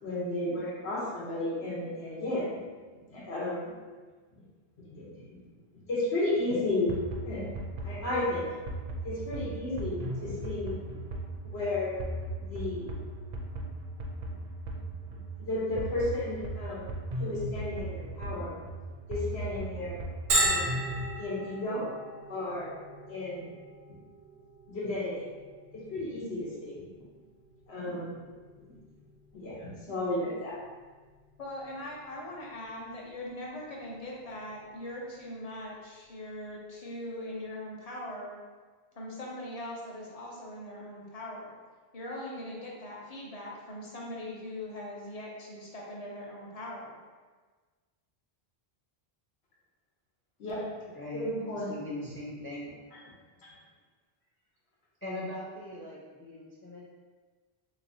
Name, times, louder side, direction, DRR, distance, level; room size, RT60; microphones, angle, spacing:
voice 1, 0.0-2.6 3.1-3.7 4.9-5.2 5.9-6.9 7.2-7.5 7.8-8.5 9.0-10.8 11.4-12.0 12.4-12.9 15.4-16.9 17.2-18.5 19.1-20.0 20.4-20.8 21.2-21.8 22.3-22.7 23.1-23.5 24.7-25.2 25.9-26.8 27.7-28.2 29.3-30.5 50.4-50.6 51.1-51.7 53.4-53.5, left 2 dB, 85° left, -6 dB, 1.3 m, -33 dB
sound 1, 6.9-21.1, right 1 dB, 55° right, 0.5 m, -38 dB
Bell, 20.3-35.7, right 2 dB, 90° right, 0.9 m, -38 dB
voice 2, 31.4-38.4 38.9-41.6 41.9-47.0, left 1 dB, 40° left, -3 dB, 0.7 m, -41 dB
voice 3, 50.9-52.7 55.0-56.8, left 1 dB, 20° left, -6 dB, 0.3 m, -40 dB
3.5 x 3.0 x 2.7 m, 1.4 s
omnidirectional pair, 1.0 m